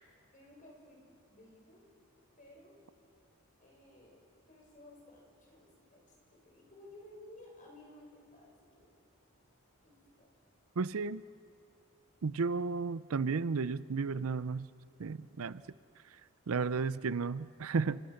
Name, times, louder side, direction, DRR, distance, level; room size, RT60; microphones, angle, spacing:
voice 1, 0.3-1.9 2.4-2.8 3.6-4.2 4.5-6.1 6.3-8.9 9.8-10.3 12.4-12.6, left 1 dB, 35° left, -1 dB, 6.9 m, -56 dB
voice 2, 10.8-11.2 12.2-14.7 15.0-15.6 16.5-18.0, right 4 dB, 65° right, 16 dB, 0.5 m, -33 dB
29.0 x 27.0 x 6.6 m, 2.3 s
head